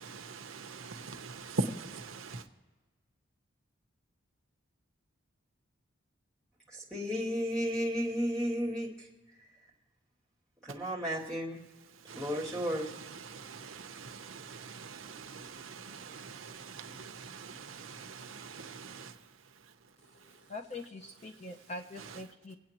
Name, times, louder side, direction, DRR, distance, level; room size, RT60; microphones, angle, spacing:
voice 1, 0.0-2.5 10.7-10.9 11.8-20.5 22.0-22.2, right 3 dB, 75° right, 0.8 m, -43 dB
voice 2, 6.7-9.1 10.6-11.6 12.1-12.9, equal, 5° left, 2.3 m, -33 dB
voice 3, 20.0-22.6, left 2 dB, 30° left, 0.6 m, -44 dB
25.5 x 8.5 x 2.9 m
head